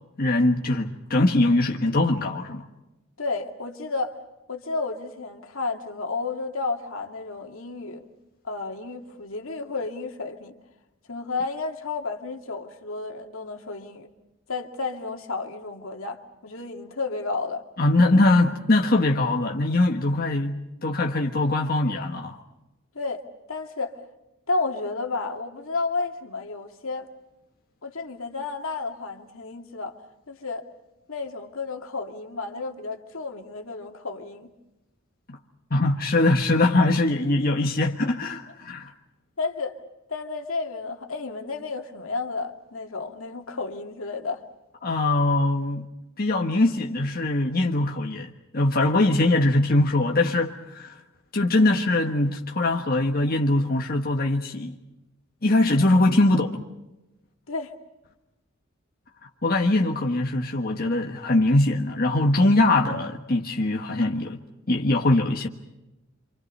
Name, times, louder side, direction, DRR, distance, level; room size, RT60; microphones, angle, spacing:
voice 1, 0.2-2.7 17.8-22.4 35.3-35.4 35.7-38.9 44.8-45.9 46.2-50.9 51.3-54.7 55.4-56.6 59.4-64.4 64.7-65.5, left 2 dB, 45° left, 1.5 m, -22 dB
voice 2, 3.2-4.2 4.5-8.1 8.4-10.5 11.1-14.1 14.5-17.6 22.9-24.0 24.5-27.1 27.8-30.0 30.3-30.6 31.1-34.5 39.4-39.8 40.1-44.4 51.6-51.8 57.5-57.7, left 3 dB, 80° left, 2.4 m, -32 dB
28.0 x 26.5 x 5.5 m
head